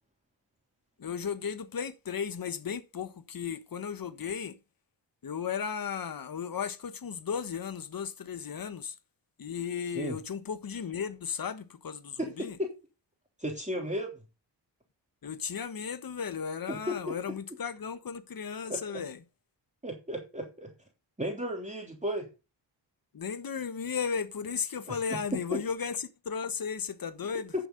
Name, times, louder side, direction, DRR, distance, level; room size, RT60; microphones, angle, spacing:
voice 1, 1.0-4.6 5.2-9.0 9.4-12.6 15.2-19.2 23.1-27.5, left 6 dB, 50° left, 1.2 m, -35 dB
voice 2, 12.2-12.7 13.4-14.2 16.7-17.1 18.7-19.0 19.8-20.7 21.2-22.3 24.9-25.0 25.5-25.6, equal, 15° right, 3.1 m, -34 dB
11.0 x 7.2 x 3.9 m
cardioid pair, 50°, 45 cm